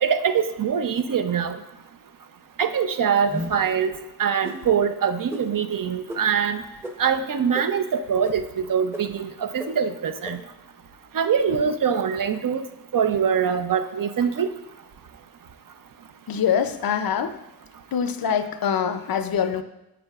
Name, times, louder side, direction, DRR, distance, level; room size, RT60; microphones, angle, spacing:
voice 1, 0.0-1.6 2.6-3.9 4.2-6.6 7.0-8.4 8.7-10.4 11.1-12.6 12.9-14.5, right 7 dB, 60° right, 9 dB, 0.5 m, -23 dB
sound 1, 3.3-3.7 4.4-4.6 5.3-5.4 6.1-6.2 6.8-6.9 7.5-7.6 8.2-8.3 8.9-9.0 9.6-9.7 10.2-10.3, equal, 5° right, 0.7 m, -32 dB
voice 2, 16.3-17.4 17.9-19.6, left 8 dB, 65° left, 10 dB, 0.5 m, -24 dB
10.0 x 7.3 x 2.4 m, 0.94 s
wide cardioid pair, 115°, 38 cm